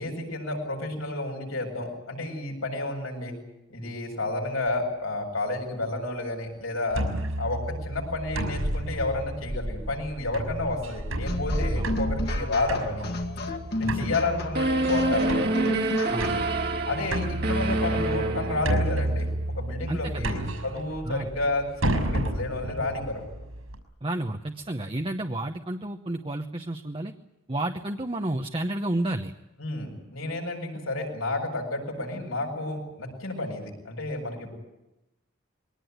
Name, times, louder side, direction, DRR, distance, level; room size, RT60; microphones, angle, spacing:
voice 1, 0.0-3.3 3.7-7.0 7.4-13.0 13.7-15.4 16.9-19.3 19.6-23.2 29.6-34.5, left 2 dB, 85° left, 1 dB, 7.6 m, -31 dB
sound 1, 6.9-23.8, right 1 dB, 80° right, 5.9 m, -31 dB
sound 2, 11.2-16.6, left 2 dB, 50° left, 2.2 m, -33 dB
voice 2, 13.8-14.2 16.1-16.4 19.9-20.5 21.0-21.3 24.0-27.1 27.5-29.3, right 1 dB, 25° right, 4 dB, 0.9 m, -31 dB
sound 3, 14.5-19.2, right 2 dB, 50° right, 2.0 m, -27 dB
22.5 x 18.5 x 9.4 m, 0.96 s
head